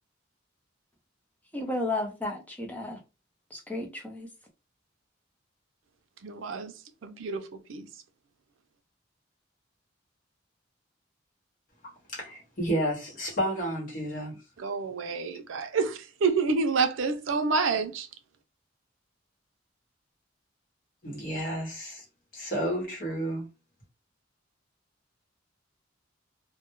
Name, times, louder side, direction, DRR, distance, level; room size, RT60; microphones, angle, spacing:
voice 1, 1.5-3.0 3.5-4.3, left 2 dB, 10° left, 0.5 m, -33 dB
voice 2, 6.2-6.7 7.0-7.9 14.6-18.1, right 4 dB, 85° right, 0.5 m, -28 dB
voice 3, 12.1-14.4 21.0-22.0 22.3-23.5, right 1 dB, 45° left, 0.9 m, -31 dB
2.2 x 2.0 x 3.0 m
head